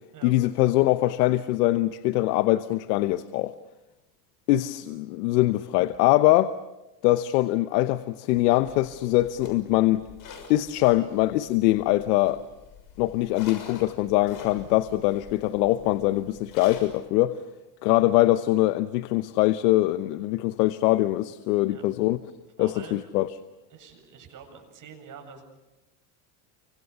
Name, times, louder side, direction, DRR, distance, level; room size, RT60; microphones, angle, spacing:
voice 1, 0.2-3.5 4.5-6.5 7.0-10.1 10.5-12.4 13.0-17.4 17.8-22.2 22.6-23.3, left 17 dB, 85° left, 1.0 m, -23 dB
sound 1, 8.3-17.0, left 5 dB, 45° left, 6.4 m, -47 dB
voice 2, 22.6-23.2 23.7-25.4, right 6 dB, 40° right, 7.7 m, -46 dB
29.5 x 25.0 x 7.0 m
supercardioid pair, 105°, 46 cm